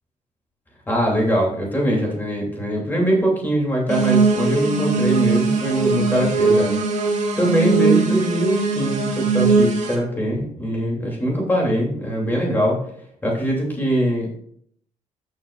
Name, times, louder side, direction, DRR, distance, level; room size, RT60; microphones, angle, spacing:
voice 1, 0.9-6.7 7.4-12.8 13.2-14.3, equal, 15° left, -2 dB, 2.9 m, -22 dB
sound 1, 3.9-10.0, right 4 dB, 65° right, 2.1 m, -20 dB
15.0 x 6.6 x 2.5 m, 0.66 s
cardioid pair, 160°, 13 cm